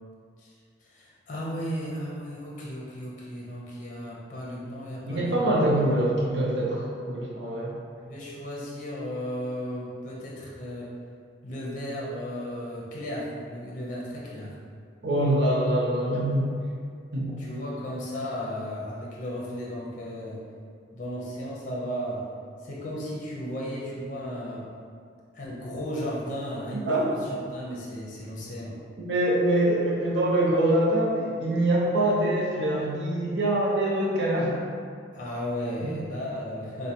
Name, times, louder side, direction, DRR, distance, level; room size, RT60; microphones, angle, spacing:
voice 1, 0.8-5.9 8.0-10.9 11.4-14.5 17.4-20.4 20.9-22.3 22.6-24.6 25.3-28.8 35.1-36.9, equal, 40° left, -5 dB, 0.5 m, -35 dB
voice 2, 5.1-7.7 15.0-16.5 17.1-17.4 26.9-27.0 29.0-34.5 35.8-35.9, right 1 dB, 65° right, -5 dB, 0.7 m, -24 dB
4.6 x 2.1 x 2.8 m, 2.2 s
head